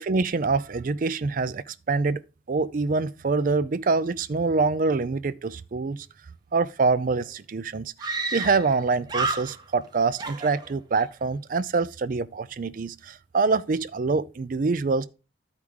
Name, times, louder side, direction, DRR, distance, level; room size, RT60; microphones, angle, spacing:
voice 1, 0.1-2.2 2.5-6.1 6.5-15.1, right 4 dB, 50° right, 0.4 m, -25 dB
Screaming, 7.2-7.3 8.0-8.8 9.1-9.9 10.2-11.1, right 3 dB, 25° right, 0.9 m, -30 dB
12.0 x 4.9 x 3.6 m
head